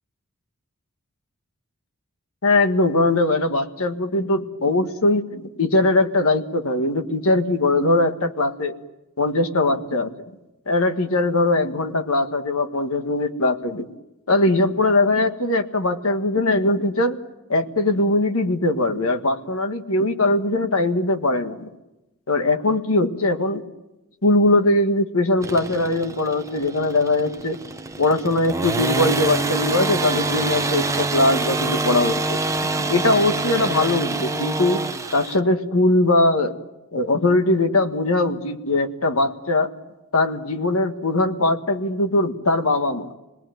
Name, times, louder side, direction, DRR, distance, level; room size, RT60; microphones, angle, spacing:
voice 1, 2.4-8.7 9.2-10.1 10.7-13.9 14.3-17.2 17.5-21.7 22.3-23.6 24.2-27.6 28.0-32.4 32.8-34.8 35.1-36.5 36.9-39.7 40.1-43.1, left 2 dB, 70° left, 7 dB, 1.6 m, -21 dB
sound 1, 25.4-35.4, right 2 dB, 15° right, 1.0 m, -26 dB
28.5 x 20.0 x 9.2 m, 1.0 s
head